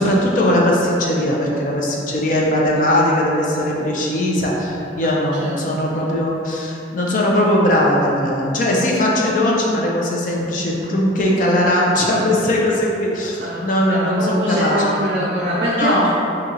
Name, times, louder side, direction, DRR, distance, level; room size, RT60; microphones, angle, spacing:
voice 1, 0.0-14.8 15.7-16.1, left 1 dB, 45° left, -3 dB, 0.5 m, -19 dB
voice 2, 13.9-16.1, equal, 50° right, -5 dB, 0.4 m, -23 dB
2.9 x 2.8 x 3.7 m, 2.7 s
head